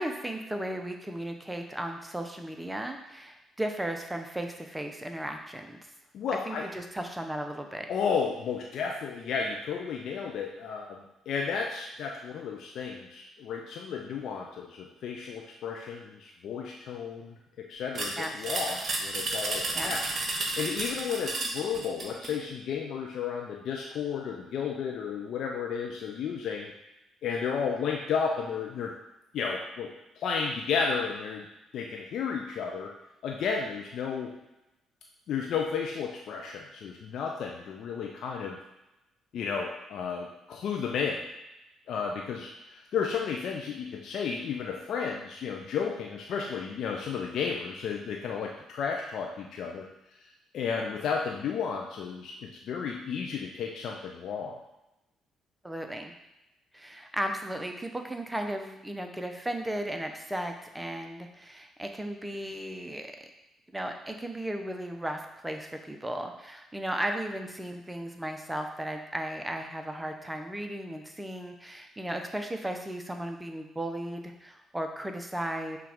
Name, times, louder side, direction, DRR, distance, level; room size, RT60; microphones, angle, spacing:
voice 1, 0.0-5.8 6.5-7.9 18.2-18.5 19.7-20.0 55.6-56.1 56.7-63.1 63.7-75.8, right 1 dB, 10° right, 4 dB, 0.7 m, -35 dB
voice 2, 6.1-6.6 7.9-20.0 20.4-26.7 27.2-28.9 29.3-29.9 30.2-31.5 31.7-32.9 33.2-34.3 35.3-38.6 39.3-41.3 41.9-49.9 50.5-54.6, left 6 dB, 60° left, 0 dB, 0.4 m, -33 dB
sound 1, 18.0-22.4, right 2 dB, 50° right, 0.9 m, -32 dB
5.7 x 2.4 x 3.5 m, 0.94 s
hypercardioid pair, 45°, 0 cm